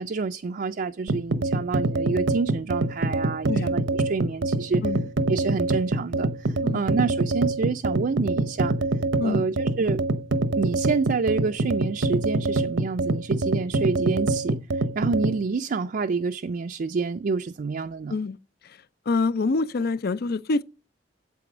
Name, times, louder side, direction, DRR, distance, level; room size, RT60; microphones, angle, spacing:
voice 1, 0.0-4.8 5.3-8.8 9.2-10.0 10.5-18.2, right 4 dB, 50° right, 0.4 m, -28 dB
sound 1, 1.1-15.4, right 2 dB, 85° right, 0.8 m, -25 dB
voice 2, 19.1-20.6, left 3 dB, 55° left, 0.5 m, -25 dB
8.4 x 7.6 x 6.0 m
head